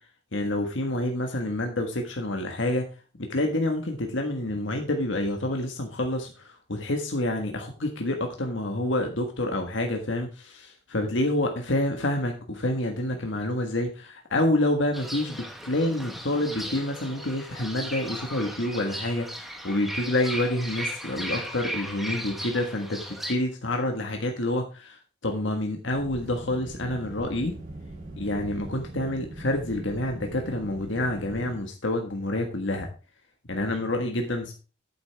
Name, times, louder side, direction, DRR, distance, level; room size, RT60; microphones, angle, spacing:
voice 1, 0.3-2.8 3.2-25.0 25.2-27.5 28.2-32.9 33.5-34.5, left 1 dB, 75° left, 3 dB, 1.5 m, -28 dB
Fowl / Bird, 14.9-23.3, equal, ahead, 1.1 m, -36 dB
sound 1, 25.9-31.6, right 2 dB, 40° right, 2.7 m, -41 dB
8.8 x 8.6 x 3.4 m, 0.34 s
head